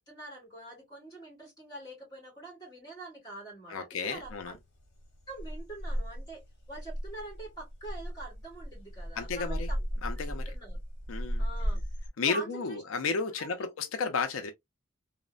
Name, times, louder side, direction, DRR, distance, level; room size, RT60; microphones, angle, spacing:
voice 1, 0.1-4.6 5.3-6.4 6.7-9.8 10.3-10.8 11.4-11.8 12.3-12.8 13.3-13.7, right 2 dB, 20° left, 1.7 m, -45 dB
voice 2, 3.7-4.5 9.2-9.7 10.0-10.5 11.1-11.4 12.2-14.5, left 4 dB, 80° left, 0.4 m, -32 dB
sound 1, 4.2-12.1, equal, 55° left, 1.1 m, -36 dB
3.0 x 2.0 x 2.3 m
head